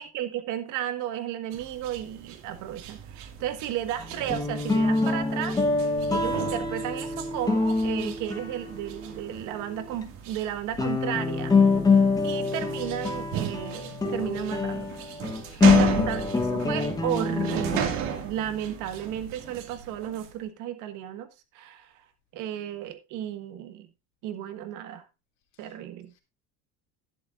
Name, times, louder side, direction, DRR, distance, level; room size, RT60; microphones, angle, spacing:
voice 1, 0.0-5.6 6.1-11.5 12.2-14.9 15.5-21.3 21.5-22.0 22.3-23.9 24.2-25.0 25.6-26.1, right 11 dB, 65° right, 1.7 m, -34 dB
sound 1, 1.5-20.4, right 8 dB, 80° right, 2.3 m, -36 dB
sound 2, 4.0-9.3 9.9-10.0 10.8-17.8, left 4 dB, 10° left, 1.1 m, -25 dB
voice 2, 15.3-16.1 22.6-22.7 25.6-25.7 26.1-26.2, left 8 dB, 55° left, 2.9 m, -55 dB
11.5 x 11.0 x 2.6 m
cardioid pair, 170°, 32 cm